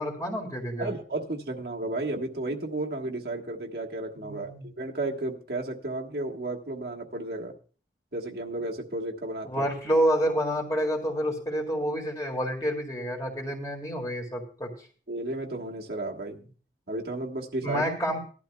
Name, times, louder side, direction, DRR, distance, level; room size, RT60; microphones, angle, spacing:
voice 1, 0.0-0.9 4.2-4.6 9.4-14.7 17.6-18.2, equal, 20° left, 1 dB, 2.0 m, -28 dB
voice 2, 0.8-7.5 8.1-9.6 15.1-16.5 16.9-17.8, right 2 dB, 65° right, 0 dB, 1.4 m, -33 dB
18.0 x 12.0 x 2.3 m, 0.39 s
head